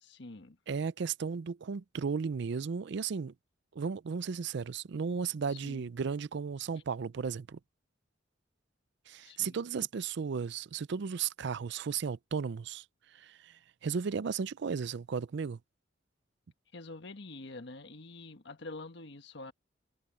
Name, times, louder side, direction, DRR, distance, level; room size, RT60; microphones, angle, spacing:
voice 1, 0.0-0.6 5.5-5.9 9.2-9.6 16.7-19.5, left 2 dB, 60° left, 1.3 m, -46 dB
voice 2, 0.7-3.3 3.7-7.6 9.1-12.8 13.1-15.6, right 6 dB, 60° right, 0.4 m, -35 dB
head